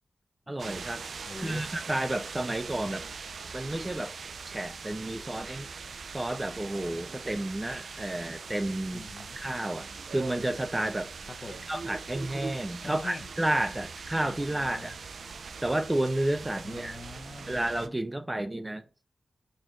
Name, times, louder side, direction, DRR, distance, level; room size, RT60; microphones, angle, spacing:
voice 1, 0.5-1.0 1.4-3.0 3.5-4.1 4.5-5.7 6.1-9.0 9.4-9.9 10.1-11.1 11.7-14.9 15.6-17.0 17.5-18.8, right 1 dB, 20° right, 0.5 m, -31 dB
sound 1, 0.6-17.9, right 5 dB, 80° right, 0.3 m, -42 dB
voice 2, 1.3-1.7 8.9-9.4 11.3-11.7 12.8-13.3 14.2-15.0 16.6-17.6, left 3 dB, 50° left, 0.7 m, -44 dB
4.1 x 2.5 x 3.0 m
cardioid pair, 65°, 0 cm